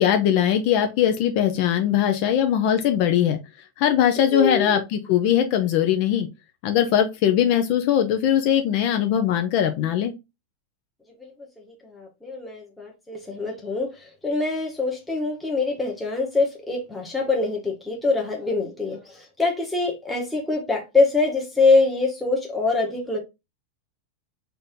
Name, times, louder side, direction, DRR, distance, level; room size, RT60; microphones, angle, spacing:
voice 1, 0.0-3.4 3.8-6.3 6.6-10.1, left 10 dB, 50° left, 0.6 m, -20 dB
voice 2, 4.3-4.8 11.2-11.3 11.7-23.2, left 3 dB, 5° left, 1.1 m, -24 dB
4.2 x 2.7 x 3.5 m
supercardioid pair, 150°, 0 cm